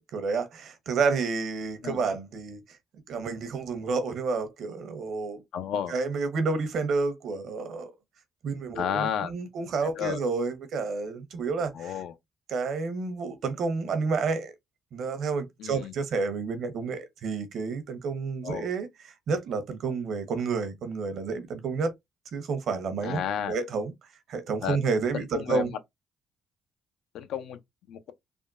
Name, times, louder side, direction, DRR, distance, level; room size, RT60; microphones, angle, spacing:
voice 1, 0.0-2.6 3.1-5.4 5.9-7.9 8.4-12.0 12.5-14.5 14.9-21.9 22.3-23.2 23.5-23.9 24.3-25.7, right 4 dB, 70° right, 0.8 m, -30 dB
voice 2, 5.5-5.9 8.8-9.3 10.0-10.2 11.7-12.1 15.6-15.9 18.4-18.7 23.0-23.6 24.6-24.8 25.1-25.7 27.1-27.6 27.9-28.1, left 8 dB, 85° left, 0.5 m, -31 dB
3.5 x 2.2 x 2.4 m
cardioid pair, 90°, 0 cm